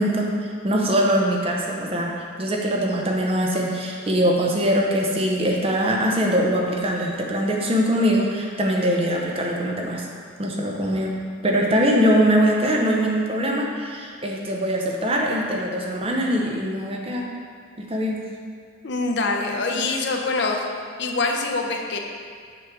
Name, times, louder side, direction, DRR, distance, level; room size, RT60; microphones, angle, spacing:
voice 1, 0.0-10.1 10.4-11.2 11.4-17.3 17.9-18.2 19.7-19.9, equal, 30° right, -1 dB, 0.6 m, -22 dB
voice 2, 18.8-20.6 21.0-22.0, left 3 dB, 55° left, 3 dB, 0.6 m, -24 dB
6.0 x 3.7 x 5.8 m, 2.1 s
head